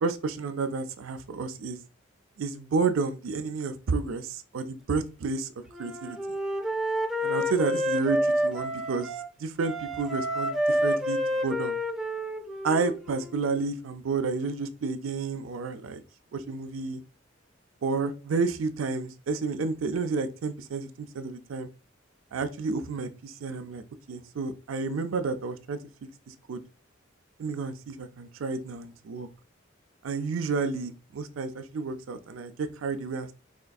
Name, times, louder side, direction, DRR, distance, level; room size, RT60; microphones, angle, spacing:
voice 1, 0.0-1.8 2.4-5.5 5.8-6.2 7.2-9.1 9.4-11.8 12.6-16.0 16.3-17.0 17.8-21.7 22.3-25.8 26.3-26.6 27.4-29.3 30.0-33.3, right 4 dB, 90° right, 0.4 m, -31 dB
Wind instrument woodwind instrument, 5.7-9.3 9.6-13.4, equal, 5° right, 0.4 m, -29 dB
4.3 x 2.5 x 2.3 m
head